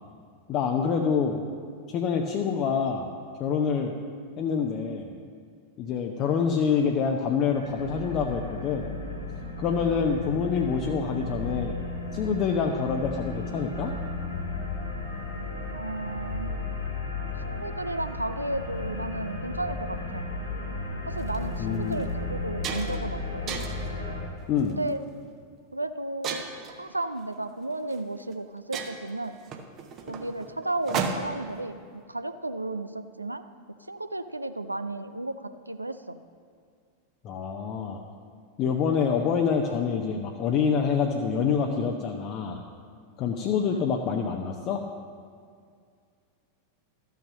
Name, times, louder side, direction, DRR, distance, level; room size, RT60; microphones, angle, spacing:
voice 1, 0.5-1.5 1.9-3.1 3.4-3.9 4.4-5.1 5.8-8.9 9.6-11.7 12.1-13.9 21.6-22.1 24.5-24.8 37.2-38.0 38.6-42.6 43.2-44.8, left 6 dB, 35° left, 2 dB, 0.7 m, -26 dB
sound 1, 7.5-24.2, left 2 dB, 85° left, 1.8 m, -34 dB
voice 2, 15.7-16.5 17.5-20.3 21.1-23.6 24.6-25.0 25.7-26.4 26.8-29.4 30.1-33.4 33.9-36.2 43.7-43.9, right 2 dB, 85° right, 10 dB, 0.4 m, -33 dB
sound 2, 21.2-21.4 21.9-22.0 22.3-23.1 23.5-23.9 24.6-24.9 26.2-26.8 27.9-28.0 28.3-28.4 28.7-31.5, right 5 dB, 35° right, 0.9 m, -34 dB
13.0 x 5.8 x 6.3 m, 2.2 s
figure-of-eight pair, 90°, 0 cm